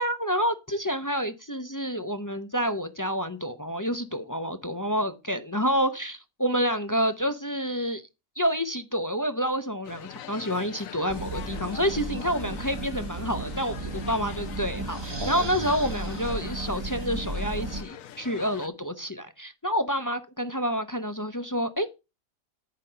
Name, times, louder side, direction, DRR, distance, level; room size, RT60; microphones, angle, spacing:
voice 1, 0.0-8.0 8.4-21.9, equal, 20° left, 9 dB, 0.5 m, -28 dB
sound 1, 9.8-18.7, left 10 dB, 75° left, 1.1 m, -43 dB
sound 2, 11.1-17.8, right 2 dB, 20° right, 0.8 m, -34 dB
10.5 x 5.2 x 5.6 m, 0.27 s
omnidirectional pair, 1.4 m